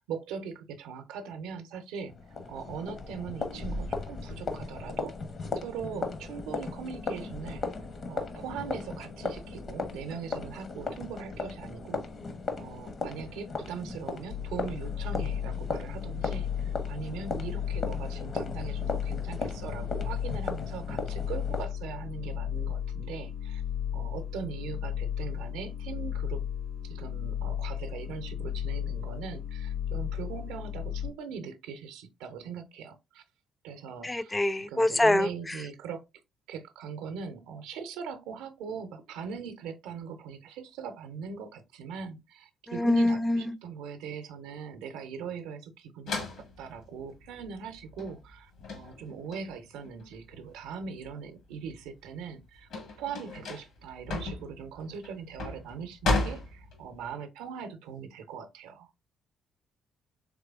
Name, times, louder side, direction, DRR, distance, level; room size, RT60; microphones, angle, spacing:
voice 1, 0.0-2.1 2.5-5.2 5.5-7.6 8.1-12.0 12.6-23.6 23.9-26.4 26.9-33.2 33.6-34.4 34.7-36.0 36.5-52.7 53.0-58.9, right 6 dB, 75° right, 0.5 m, -40 dB
sound 1, 2.1-21.7, left 3 dB, 50° left, 0.7 m, -37 dB
sound 2, 14.3-31.1, left 9 dB, 90° left, 1.9 m, -34 dB
voice 2, 34.0-35.3 42.7-43.5, left 1 dB, 15° left, 0.4 m, -24 dB
sound 3, 46.1-51.1 51.5-57.1, left 2 dB, 70° left, 1.2 m, -35 dB
3.6 x 3.2 x 2.4 m
hypercardioid pair, 45°, 0 cm